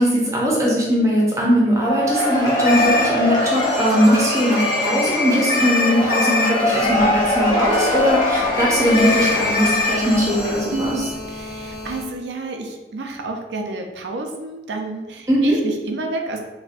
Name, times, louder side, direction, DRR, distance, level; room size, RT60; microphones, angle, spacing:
voice 1, 0.0-10.9 15.3-15.6, equal, 15° right, -3 dB, 0.6 m, -19 dB
Cheering / Applause / Crowd, 1.8-10.7, left 1 dB, 20° left, 0.7 m, -23 dB
sound 1, 2.6-12.0, left 3 dB, 70° left, 1.2 m, -25 dB
voice 2, 10.7-16.4, right 2 dB, 80° right, 3 dB, 0.5 m, -29 dB
4.1 x 2.1 x 2.5 m, 1.1 s
head